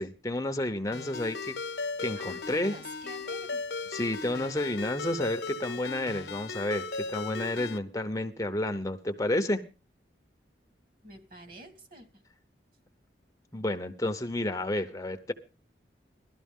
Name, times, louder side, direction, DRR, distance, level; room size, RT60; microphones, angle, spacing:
voice 1, 0.0-2.7 3.9-9.6 13.5-15.3, left 1 dB, 15° left, 8 dB, 0.7 m, -31 dB
Ringtone, 0.9-7.8, left 4 dB, 75° left, 0.9 m, -37 dB
voice 2, 2.1-3.7 11.0-12.2, right 2 dB, 50° right, 6 dB, 3.1 m, -49 dB
17.5 x 13.0 x 3.6 m, 0.33 s
head